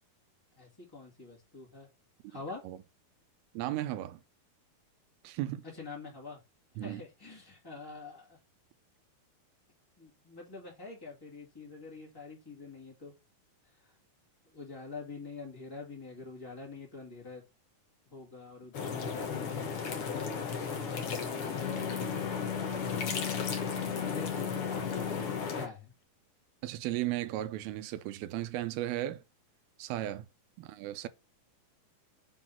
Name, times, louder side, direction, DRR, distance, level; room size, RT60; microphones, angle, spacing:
voice 1, 0.6-1.9 2.3-2.6 5.8-6.4 6.8-8.4 10.0-13.1 14.5-17.4 18.1-19.8 20.8-22.1 24.1-25.3 25.5-25.9, left 3 dB, 10° left, 1.3 m, -46 dB
voice 2, 3.5-4.2 5.2-5.6 6.8-7.0 26.6-29.2 29.8-30.3 30.6-31.1, right 14 dB, 85° right, 2.5 m, -35 dB
sound 1, 18.7-25.7, left 6 dB, 55° left, 1.6 m, -35 dB
Wind instrument woodwind instrument, 21.3-25.5, left 8 dB, 80° left, 1.7 m, -38 dB
7.2 x 3.9 x 5.7 m
omnidirectional pair, 4.4 m